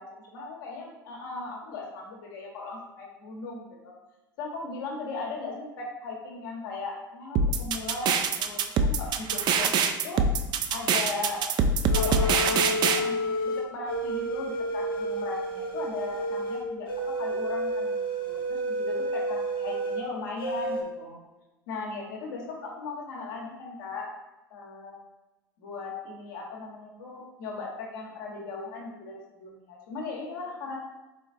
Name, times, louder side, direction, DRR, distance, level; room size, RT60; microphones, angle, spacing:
voice 1, 0.3-3.9 4.4-10.2 10.7-11.4 11.9-21.2 21.7-24.1 24.5-25.0 25.6-30.8, left 3 dB, 65° left, -1 dB, 1.0 m, -37 dB
sound 1, 7.4-13.0, right 5 dB, 40° right, 0.4 m, -24 dB
sound 2, 11.9-20.0 20.4-20.8, right 1 dB, 80° left, 0.7 m, -30 dB
4.0 x 3.9 x 2.5 m, 1.1 s
figure-of-eight pair, 75°, 12 cm